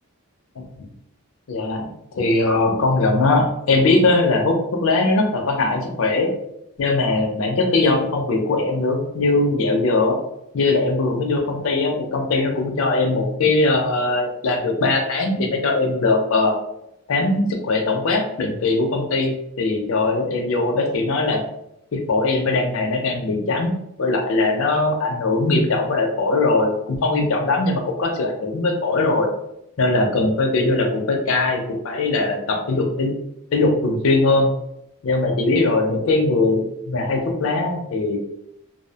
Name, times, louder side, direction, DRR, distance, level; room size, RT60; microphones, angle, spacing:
voice 1, 1.5-1.8 2.1-6.3 6.8-10.2 10.5-16.6 17.1-21.4 21.9-29.3 29.8-33.1 33.5-34.5 35.0-38.2, left 2 dB, 70° left, 2 dB, 0.5 m, -20 dB
2.6 x 2.0 x 2.7 m, 0.79 s
head